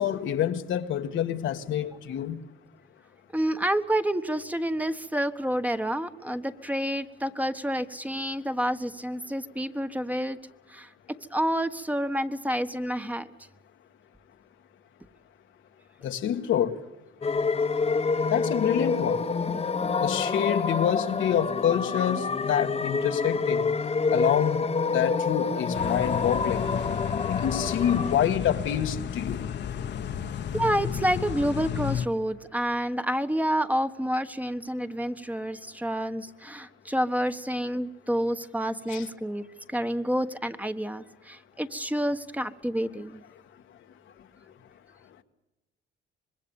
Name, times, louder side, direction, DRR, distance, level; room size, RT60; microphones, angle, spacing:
voice 1, 0.0-2.4 16.0-16.9 18.3-19.3 20.0-23.7 24.1-26.7 27.3-29.5 38.9-39.1, left 10 dB, 75° left, 1.7 m, -27 dB
voice 2, 3.3-10.4 10.7-10.9 11.3-13.3 19.5-19.9 30.5-43.2, equal, 5° right, 1.4 m, -29 dB
sound 1, 17.2-28.1, left 4 dB, 30° left, 1.2 m, -27 dB
sound 2, 25.7-32.1, left 9 dB, 60° left, 1.4 m, -32 dB
26.0 x 21.5 x 7.2 m
cardioid pair, 90°, 20 cm